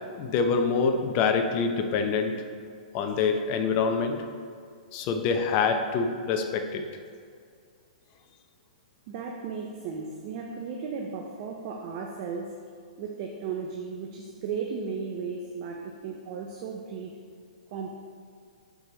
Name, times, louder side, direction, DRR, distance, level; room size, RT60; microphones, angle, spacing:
voice 1, 0.1-2.4 2.9-4.2 4.9-6.8, left 5 dB, 35° left, 6 dB, 0.7 m, -26 dB
voice 2, 9.1-12.5 13.0-17.1 17.7-17.9, right 5 dB, 45° right, 1 dB, 0.7 m, -35 dB
7.1 x 4.9 x 3.9 m, 2.2 s
hypercardioid pair, 120°, 4 cm